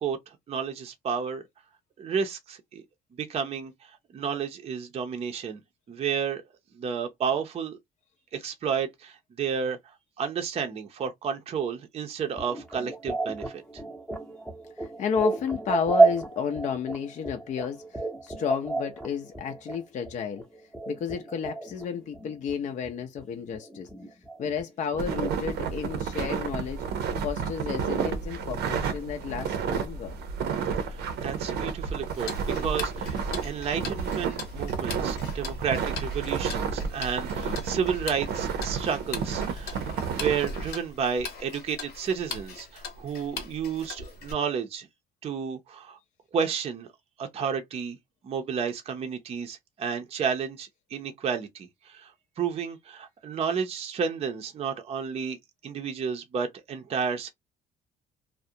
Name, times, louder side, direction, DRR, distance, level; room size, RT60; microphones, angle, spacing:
voice 1, 0.0-1.4 2.0-2.8 3.2-5.6 5.9-6.4 6.7-7.8 8.3-13.6 30.9-32.3 32.6-33.2 33.4-44.9 45.2-46.0 46.3-46.9 47.2-48.0 48.2-52.1 52.4-55.4 55.6-57.3, right 6 dB, 35° right, 0.5 m, -31 dB
sound 1, 12.4-21.8 22.1-22.9 23.1-25.4, right 3 dB, 5° left, 0.7 m, -30 dB
voice 2, 14.8-20.4 20.9-23.9 24.4-26.8 27.2-30.2, left 7 dB, 45° left, 0.5 m, -32 dB
sound 2, 25.0-40.7, right 6 dB, 75° right, 0.6 m, -31 dB
Tick-tock, 32.1-44.3, left 5 dB, 70° left, 1.1 m, -41 dB
2.4 x 2.1 x 2.6 m
cardioid pair, 110°, 17 cm